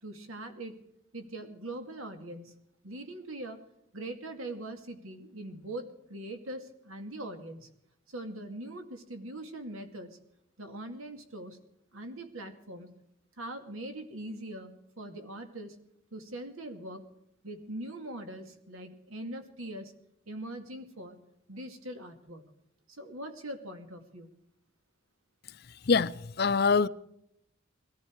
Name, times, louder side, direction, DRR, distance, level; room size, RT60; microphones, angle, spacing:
voice 1, 0.0-0.8 1.1-2.5 2.8-3.6 3.9-7.7 8.1-10.2 10.6-11.6 11.9-12.9 13.4-15.8 16.1-17.1 17.4-19.9 20.3-21.2 21.5-22.4 22.9-24.3, right 1 dB, 90° right, 2.3 m, -42 dB
voice 2, 26.4-26.9, left 5 dB, 50° left, 0.5 m, -23 dB
21.0 x 14.5 x 4.7 m
head